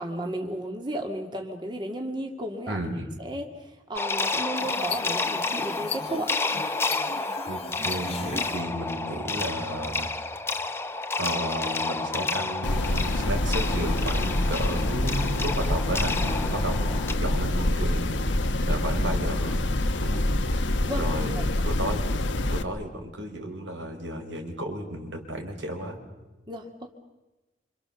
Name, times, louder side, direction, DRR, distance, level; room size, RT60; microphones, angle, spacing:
voice 1, 0.0-2.8 3.2-6.3 20.8-21.5 26.5-26.9, right 1 dB, 25° right, 2 dB, 2.1 m, -34 dB
voice 2, 2.7-3.1 7.5-10.1 11.2-19.6 20.0-20.2 21.0-22.0 22.5-26.0, right 1 dB, 80° right, 2 dB, 5.0 m, -33 dB
sound 1, 4.0-17.1, left 3 dB, 15° left, 0.9 m, -30 dB
sound 2, 4.5-8.6, left 5 dB, 35° left, 1.3 m, -38 dB
sound 3, 12.6-22.6, left 1 dB, 80° left, 1.3 m, -26 dB
27.5 x 27.0 x 7.0 m, 1.1 s
head